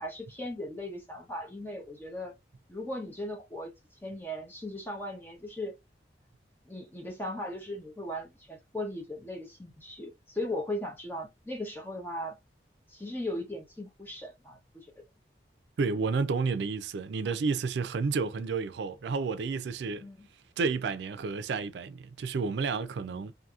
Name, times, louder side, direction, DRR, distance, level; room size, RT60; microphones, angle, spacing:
voice 1, 0.0-2.3 2.7-3.7 4.0-5.7 6.7-12.4 12.9-14.9 20.0-20.3 23.1-23.3, left 1 dB, 10° left, 0.8 m, -38 dB
voice 2, 15.8-20.1 20.6-23.3, right 4 dB, 75° right, 0.4 m, -31 dB
2.8 x 2.6 x 2.4 m
head